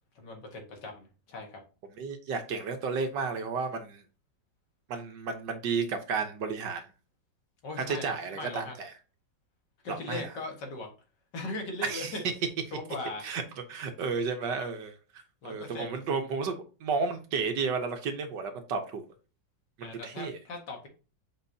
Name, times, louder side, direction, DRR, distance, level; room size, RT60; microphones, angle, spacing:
voice 1, 0.2-1.6 7.6-8.7 9.8-10.9 11.3-12.2 12.7-13.3 15.4-16.0 19.8-20.9, left 2 dB, 65° left, 2.2 m, -39 dB
voice 2, 1.9-4.0 4.9-6.8 7.9-8.9 9.9-10.3 11.8-12.2 13.2-13.4 13.7-16.6 16.8-19.0 19.8-20.4, right 5 dB, 70° right, 1.6 m, -32 dB
7.3 x 5.0 x 2.7 m
omnidirectional pair, 2.0 m